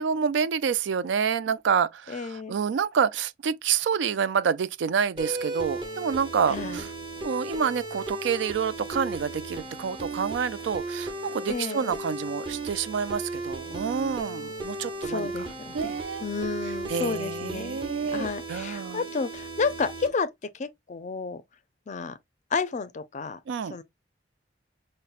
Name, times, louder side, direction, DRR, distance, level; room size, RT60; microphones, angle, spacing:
voice 1, 0.0-6.9 7.2-15.3 15.7-16.2 16.9-19.0 23.5-23.8, right 6 dB, 80° right, 0.3 m, -28 dB
voice 2, 2.1-2.6 6.5-6.8 11.5-11.9 15.0-16.0 16.2-17.8 18.1-21.4 21.9-22.2 22.5-23.4 23.7-23.8, left 4 dB, 40° left, 0.4 m, -31 dB
sound 1, 5.2-20.1, right 2 dB, 30° right, 1.0 m, -36 dB
5.4 x 2.1 x 2.4 m
head